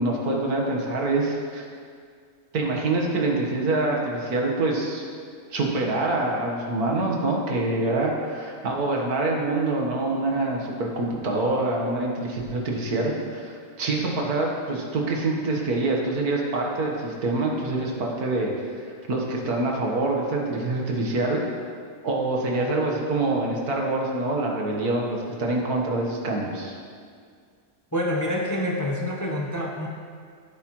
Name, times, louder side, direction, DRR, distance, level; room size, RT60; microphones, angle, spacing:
voice 1, 0.0-1.6 2.5-5.0 5.5-18.7 19.1-21.4 22.0-26.8, right 2 dB, 80° right, -1 dB, 1.9 m, -25 dB
voice 2, 27.9-29.9, left 1 dB, 15° left, -1 dB, 0.8 m, -27 dB
15.0 x 8.3 x 3.2 m, 2.1 s
omnidirectional pair, 1.6 m